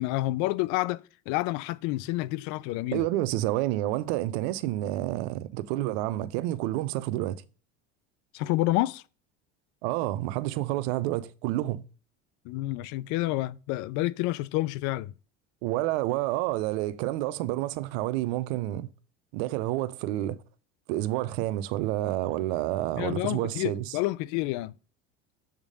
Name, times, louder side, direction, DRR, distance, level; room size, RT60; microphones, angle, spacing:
voice 1, 0.0-3.0 8.3-9.0 12.4-15.1 23.0-24.7, left 18 dB, 65° left, 0.5 m, -29 dB
voice 2, 2.9-7.4 9.8-11.8 15.6-18.9 19.3-20.4 20.9-23.8, right 15 dB, 80° right, 0.7 m, -29 dB
7.2 x 3.7 x 5.0 m
supercardioid pair, 105°, 31 cm